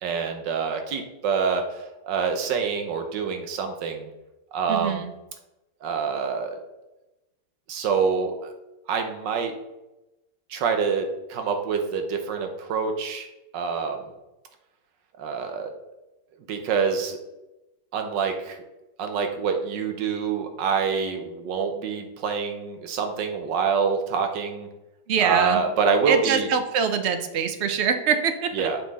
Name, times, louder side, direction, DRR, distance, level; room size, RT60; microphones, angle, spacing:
voice 1, 0.0-4.1 4.5-5.0 5.8-6.6 7.7-8.5 8.9-9.5 10.5-13.3 13.5-14.0 15.2-15.7 16.5-17.2 17.9-18.6 19.0-24.7 25.2-26.5 28.5-28.8, right 5 dB, 75° right, 5 dB, 1.6 m, -26 dB
voice 2, 4.7-5.1 25.1-25.6 26.1-28.7, right 7 dB, 60° right, 8 dB, 0.7 m, -24 dB
7.4 x 5.6 x 4.1 m, 0.99 s
omnidirectional pair, 2.0 m